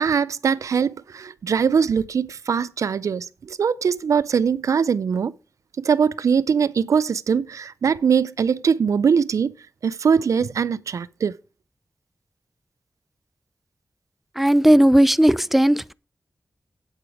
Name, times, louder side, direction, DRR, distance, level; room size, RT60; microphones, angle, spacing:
voice 1, 0.0-5.3 5.8-9.5 9.8-11.3, right 6 dB, 90° right, 0.5 m, -21 dB
voice 2, 14.4-15.9, right 1 dB, 5° right, 0.4 m, -16 dB
8.9 x 8.3 x 4.8 m
cardioid pair, 55°, 5 cm